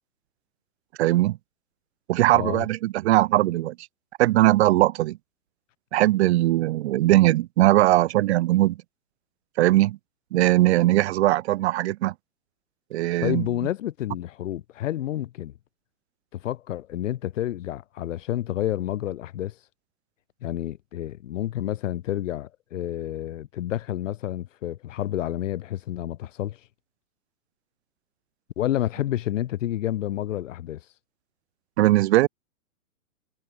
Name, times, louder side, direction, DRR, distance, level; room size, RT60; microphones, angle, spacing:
voice 1, 1.0-1.4 2.1-3.8 4.2-5.2 5.9-8.8 9.6-10.0 10.3-12.1 12.9-13.4 31.8-32.3, right 16 dB, 45° right, 2.5 m, -20 dB
voice 2, 13.2-15.5 16.3-19.5 20.4-26.6 28.6-30.8, left 13 dB, 55° left, 7.9 m, -29 dB
hypercardioid pair, 140°, 44 cm